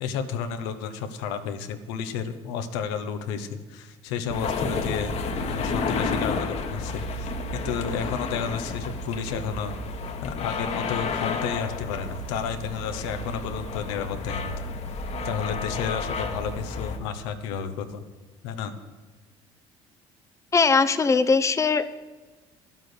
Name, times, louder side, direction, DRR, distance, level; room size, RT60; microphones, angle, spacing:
voice 1, 0.0-5.2 5.5-9.7 10.2-14.5 15.2-18.0 18.4-18.7, left 7 dB, 80° left, 8 dB, 1.0 m, -31 dB
sound 1, 4.3-17.0, left 3 dB, 50° left, 1.4 m, -31 dB
voice 2, 20.5-22.0, left 4 dB, 20° left, 9 dB, 0.7 m, -21 dB
11.5 x 7.4 x 8.0 m, 1.3 s
hypercardioid pair, 70°, 14 cm